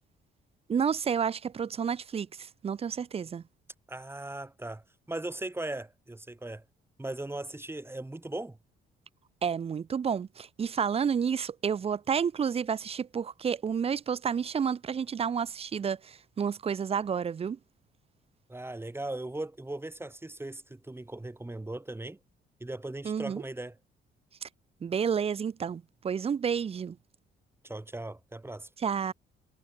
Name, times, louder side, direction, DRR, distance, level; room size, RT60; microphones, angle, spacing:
voice 1, 0.7-3.4 9.4-17.6 23.0-23.4 24.4-24.5 24.8-27.0 28.8-29.1, right 7 dB, 30° right, 0.4 m, -30 dB
voice 2, 3.9-6.6 7.0-8.6 18.5-22.2 22.6-23.8 27.6-28.7, right 2 dB, 10° right, 2.5 m, -38 dB
cardioid pair, 90°, 20 cm